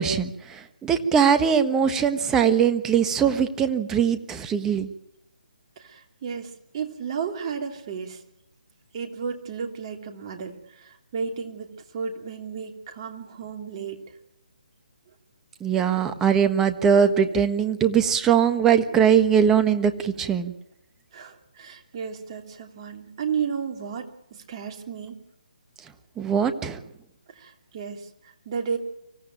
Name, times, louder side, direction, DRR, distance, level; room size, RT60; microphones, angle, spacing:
voice 1, 0.0-4.9 15.6-20.5 26.2-26.8, right 7 dB, 10° right, 9 dB, 1.3 m, -21 dB
voice 2, 5.8-8.2 8.9-14.0 21.1-25.2 27.3-28.8, right 6 dB, 35° right, 4 dB, 3.1 m, -33 dB
25.0 x 16.0 x 9.0 m, 0.80 s
figure-of-eight pair, 145°, 5 cm